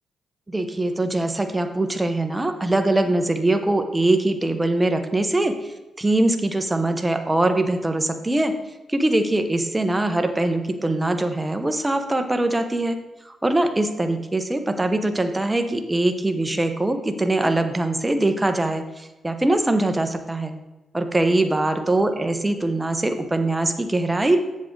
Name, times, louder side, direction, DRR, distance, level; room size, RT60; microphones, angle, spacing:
voice 1, 0.5-8.5 8.9-13.0 13.2-20.5 20.9-24.4, right 2 dB, 15° right, 7 dB, 0.9 m, -22 dB
7.5 x 7.4 x 3.9 m, 1.1 s
cardioid pair, 90°, 0 cm